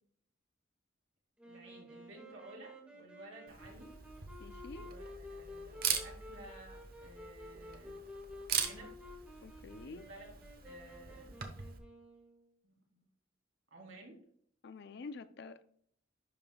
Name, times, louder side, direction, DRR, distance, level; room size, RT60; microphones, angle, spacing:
Wind instrument woodwind instrument, 1.4-12.5, left 1 dB, 5° right, 1.7 m, -52 dB
voice 1, 1.4-3.9 4.8-8.0 8.6-8.9 9.8-11.4 12.6-13.1 13.7-14.2, right 1 dB, 85° right, 3.2 m, -54 dB
Camera, 3.5-11.8, right 7 dB, 50° right, 1.0 m, -41 dB
voice 2, 4.4-4.9 9.4-10.1 14.6-15.6, left 3 dB, 60° left, 0.5 m, -48 dB
11.0 x 5.1 x 2.3 m
head